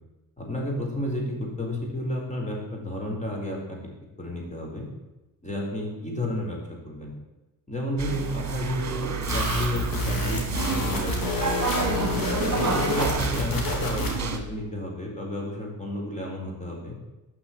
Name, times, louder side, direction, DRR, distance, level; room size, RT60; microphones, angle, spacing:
voice 1, 0.4-3.8 4.2-4.9 5.4-7.1 7.7-12.0 12.6-16.9, left 1 dB, 20° left, -1 dB, 4.5 m, -32 dB
sound 1, 8.0-14.4, right 6 dB, 50° right, 1.8 m, -29 dB
sound 2, 9.2-14.3, left 3 dB, 75° left, 3.7 m, -28 dB
12.5 x 6.3 x 8.8 m, 1.1 s
cardioid pair, 100°, 35 cm